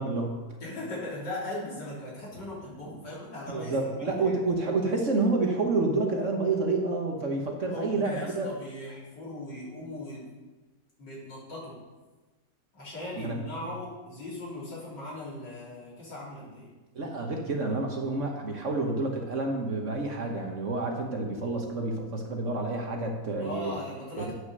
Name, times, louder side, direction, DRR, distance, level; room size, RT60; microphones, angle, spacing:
voice 1, 0.0-0.5 3.5-8.5 13.2-13.4 16.9-23.7, right 3 dB, 50° right, 2 dB, 1.4 m, -29 dB
voice 2, 0.6-4.3 7.7-10.2 11.0-11.7 12.7-16.7 23.4-24.3, left 1 dB, 80° left, -7 dB, 4.3 m, -38 dB
9.4 x 6.5 x 6.6 m, 1.2 s
omnidirectional pair, 1.9 m